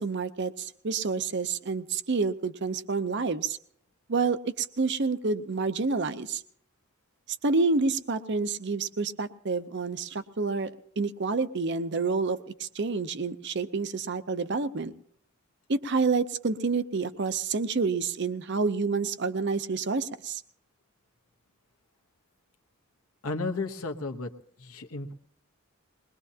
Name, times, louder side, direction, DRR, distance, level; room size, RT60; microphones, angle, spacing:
voice 1, 0.0-3.6 4.1-6.4 7.4-10.7 11.0-14.9 15.7-20.4, right 4 dB, 50° right, 13 dB, 0.7 m, -28 dB
voice 2, 23.2-24.3 24.6-25.1, left 3 dB, 75° left, 4 dB, 1.1 m, -33 dB
21.5 x 20.5 x 2.8 m, 0.63 s
head